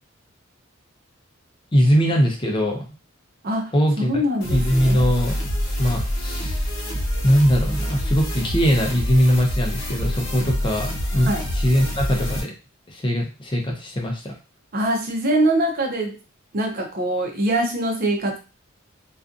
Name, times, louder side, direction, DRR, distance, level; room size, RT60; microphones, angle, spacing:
voice 1, 1.7-2.9 3.7-4.2 4.5-5.4 5.8-6.7 7.2-12.5 12.9-14.3, equal, 25° left, 1 dB, 0.5 m, -21 dB
voice 2, 3.4-5.0 11.2-11.5 14.7-16.1 16.5-18.4, right 1 dB, 45° right, 2 dB, 0.6 m, -23 dB
sound 1, 4.4-12.4, equal, 65° left, 0.9 m, -26 dB
2.5 x 2.3 x 2.5 m, 0.32 s
head